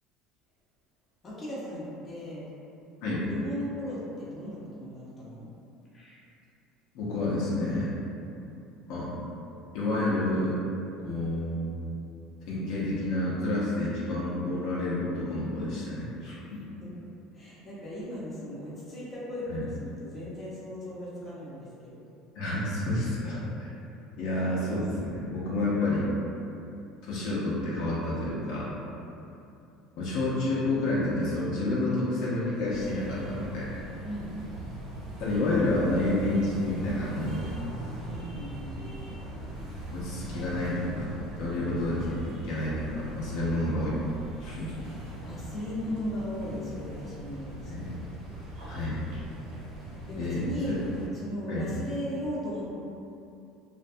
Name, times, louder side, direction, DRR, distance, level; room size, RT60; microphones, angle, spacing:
voice 1, 1.2-2.4 3.0-5.5 5.9-6.2 8.2-8.5 16.5-17.0 17.3-22.0 29.1-29.3 34.0-34.4 38.0-38.9 41.5-41.8 43.3-43.5 44.5-44.8 45.2-47.9 48.7-49.1 50.1-52.8, left 1 dB, 25° left, -9 dB, 0.7 m, -37 dB
voice 2, 6.9-7.9 8.9-9.1 9.7-10.6 11.0-11.7 12.5-16.6 19.5-19.6 22.3-23.7 24.2-26.1 27.1-28.7 30.0-33.7 35.2-37.5 39.1-39.2 39.9-41.1 41.4-42.2 42.4-44.0 44.4-44.7 47.7-47.9 48.7-49.0 50.1-50.4 50.7-50.8 51.5-51.7, left 2 dB, 70° left, -7 dB, 0.6 m, -29 dB
sound 1, 32.7-51.1, right 1 dB, 80° right, 1.2 m, -40 dB
2.5 x 2.2 x 2.6 m, 2.7 s
cardioid pair, 125°, 0 cm